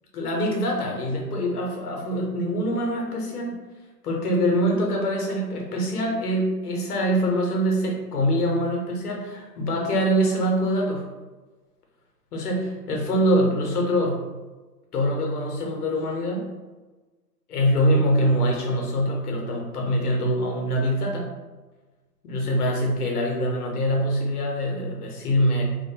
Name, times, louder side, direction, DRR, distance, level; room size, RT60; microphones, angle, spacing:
voice 1, 0.1-3.6 4.0-11.1 12.3-14.3 14.9-16.5 17.5-21.3 22.2-25.6, equal, 65° left, 0 dB, 0.9 m, -24 dB
2.5 x 2.2 x 2.6 m, 1.2 s
hypercardioid pair, 155°, 49 cm